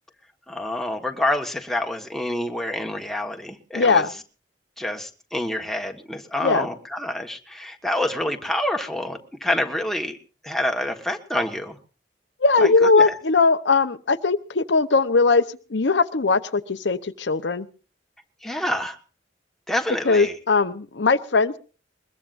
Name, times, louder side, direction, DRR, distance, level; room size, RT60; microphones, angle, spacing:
voice 1, 0.5-4.1 4.8-10.2 10.4-11.8 12.6-13.1 18.4-19.0 19.7-20.4, left 1 dB, ahead, 4 dB, 1.4 m, -27 dB
voice 2, 3.7-4.1 6.4-6.7 12.4-15.4 15.7-17.7 20.1-21.6, left 4 dB, 85° left, 12 dB, 0.8 m, -19 dB
21.5 x 21.5 x 2.5 m, 0.36 s
head